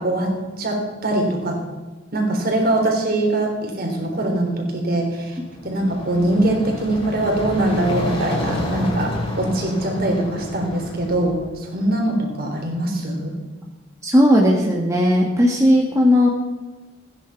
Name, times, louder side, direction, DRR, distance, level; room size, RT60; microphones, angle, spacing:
voice 1, 0.0-1.6 2.1-5.4 5.6-13.3, right 1 dB, 50° right, 1 dB, 3.7 m, -22 dB
sound 1, 5.5-11.5, left 1 dB, 30° left, 3.4 m, -29 dB
voice 2, 14.0-16.3, equal, 15° right, -1 dB, 1.5 m, -16 dB
16.0 x 10.0 x 5.8 m, 1.3 s
head